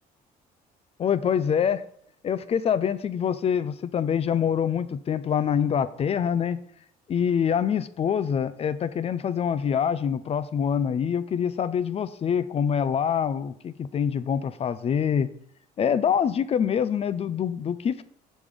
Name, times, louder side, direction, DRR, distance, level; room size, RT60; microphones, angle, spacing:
voice 1, 1.0-1.8 2.2-6.6 7.1-15.3 15.8-18.0, left 8 dB, 35° left, 15 dB, 0.4 m, -25 dB
6.3 x 5.1 x 3.6 m, 0.66 s
cardioid pair, 110°, 17 cm